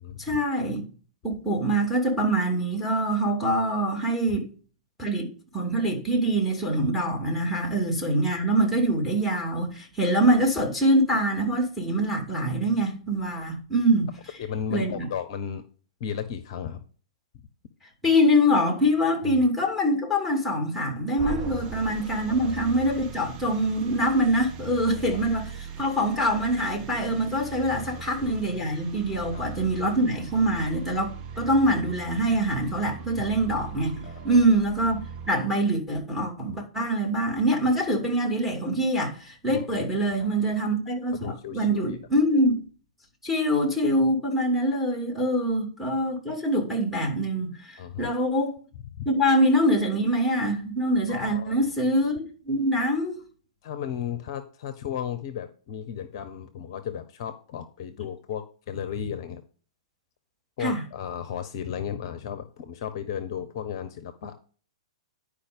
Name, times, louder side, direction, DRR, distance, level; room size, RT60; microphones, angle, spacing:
voice 1, 0.2-0.8 1.2-4.5 5.0-5.3 5.5-14.1 14.7-15.1 18.0-42.6 43.2-48.6 49.1-53.2 60.6-60.8, right 1 dB, ahead, 2.7 m, -24 dB
voice 2, 14.4-15.6 16.0-16.8 19.2-19.4 22.2-22.6 25.1-25.2 27.9-28.4 29.3-29.4 34.0-34.4 39.5-39.8 40.2-40.3 41.1-42.0 45.4-45.5 47.8-48.1 49.0-49.1 51.1-51.6 53.6-59.4 60.6-64.3, left 8 dB, 45° left, 0.8 m, -35 dB
sound 1, 21.2-35.3, right 8 dB, 30° right, 0.9 m, -39 dB
10.5 x 5.0 x 5.2 m
figure-of-eight pair, 110°, 3 cm